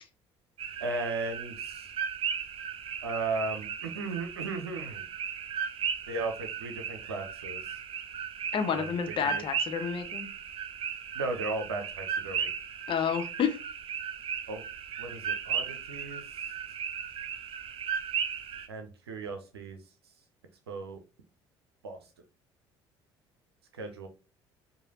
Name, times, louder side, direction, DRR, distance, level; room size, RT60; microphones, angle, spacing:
Coqui Frogs, 0.6-18.7, right 7 dB, 45° right, 0.6 m, -36 dB
voice 1, 0.8-1.9 3.0-5.0 6.1-7.6 8.7-9.4 11.2-12.5 14.5-14.6 15.0-16.2 18.7-19.8 20.7-21.0 21.8-22.0 23.8-24.1, right 3 dB, 80° right, 5 dB, 0.7 m, -36 dB
voice 2, 8.5-10.3 12.9-13.6, left 7 dB, 40° left, 7 dB, 0.7 m, -29 dB
4.8 x 2.7 x 2.7 m, 0.31 s
figure-of-eight pair, 55°, 13 cm